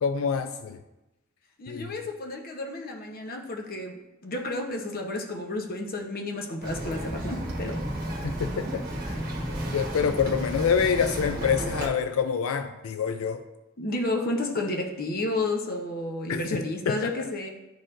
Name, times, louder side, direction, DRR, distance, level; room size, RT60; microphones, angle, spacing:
voice 1, 0.0-0.8 1.7-1.9 8.2-8.8 9.7-13.4 16.3-17.1, left 6 dB, 90° left, 9 dB, 0.4 m, -26 dB
voice 2, 1.6-7.8 13.8-17.5, left 2 dB, 45° left, 3 dB, 0.8 m, -31 dB
Bird vocalization bird call bird song, 6.6-11.9, right 1 dB, 45° right, 1.2 m, -32 dB
11.0 x 4.4 x 2.5 m, 1.0 s
head